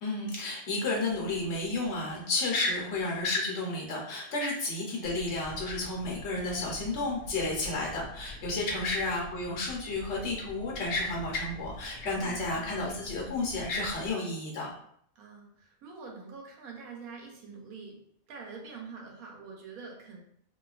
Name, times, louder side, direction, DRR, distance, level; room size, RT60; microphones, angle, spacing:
voice 1, 0.0-14.7, left 2 dB, 55° left, -2 dB, 1.0 m, -32 dB
sound 1, 5.0-14.1, equal, 80° left, 1.0 m, -46 dB
voice 2, 12.0-12.7 15.2-18.0 18.3-20.2, right 5 dB, 80° right, 0 dB, 1.1 m, -45 dB
3.0 x 2.2 x 2.3 m, 0.68 s
omnidirectional pair, 1.5 m